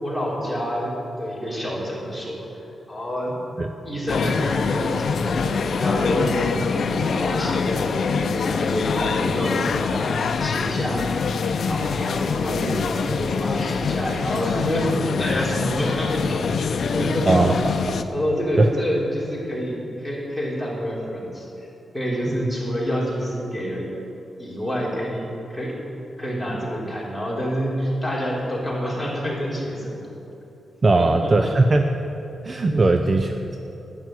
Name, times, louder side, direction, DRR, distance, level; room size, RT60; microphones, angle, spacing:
voice 1, 0.0-2.4 2.9-3.3 3.8-17.3 17.7-17.8 18.1-21.7 21.9-23.9 24.4-25.7 26.2-30.0 31.0-31.5 32.7-32.8, equal, 5° right, -5 dB, 3.7 m, -27 dB
sound 1, 4.1-18.0, left 5 dB, 65° left, 0.7 m, -24 dB
voice 2, 17.3-17.6 17.8-18.0 18.6-18.7 22.4-22.5 30.8-31.9 32.4-33.6, right 2 dB, 35° right, 6 dB, 0.6 m, -19 dB
12.0 x 9.6 x 7.9 m, 3.0 s
wide cardioid pair, 115°, 0 cm